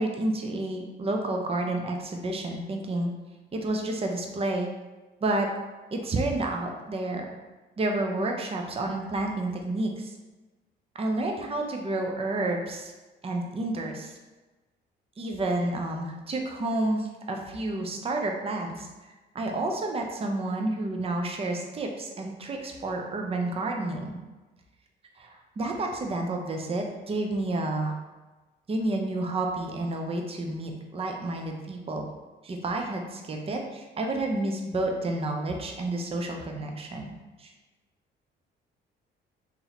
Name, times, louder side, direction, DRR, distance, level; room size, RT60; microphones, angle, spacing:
voice 1, 0.0-3.1 3.5-4.7 5.2-5.5 5.9-7.3 7.8-10.1 10.9-12.9 13.2-14.2 15.2-18.9 19.3-24.2 25.2-28.0 28.7-32.0 32.4-37.1 37.4-37.5, right 2 dB, 30° right, 2 dB, 0.6 m, -30 dB
3.0 x 2.7 x 4.0 m, 1.2 s
cardioid pair, 90°, 20 cm